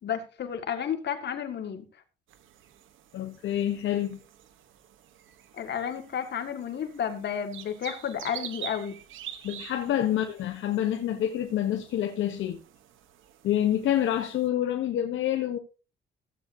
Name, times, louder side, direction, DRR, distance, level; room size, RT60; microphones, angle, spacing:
voice 1, 0.0-1.8 5.6-9.0, left 8 dB, 60° left, 2.0 m, -32 dB
sound 1, 2.3-14.5, right 10 dB, 80° right, 1.1 m, -47 dB
voice 2, 3.1-4.2 9.4-12.6 13.4-15.6, left 11 dB, 75° left, 1.1 m, -27 dB
15.5 x 8.1 x 2.8 m
cardioid pair, 90°, 20 cm